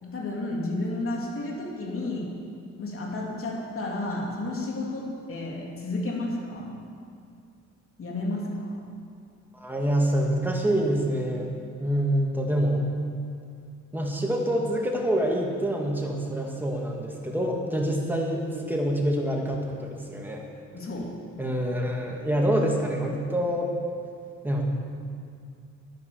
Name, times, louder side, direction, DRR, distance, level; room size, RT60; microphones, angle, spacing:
voice 1, 0.0-2.3 2.8-6.8 8.0-8.8 20.7-21.1, left 2 dB, 45° left, -2 dB, 3.0 m, -32 dB
voice 2, 9.5-11.5 11.8-12.8 13.9-20.5 21.4-23.7 24.4-24.6, right 1 dB, 5° right, -1 dB, 2.3 m, -26 dB
10.5 x 9.8 x 7.1 m, 2.3 s
cardioid pair, 90°, 30 cm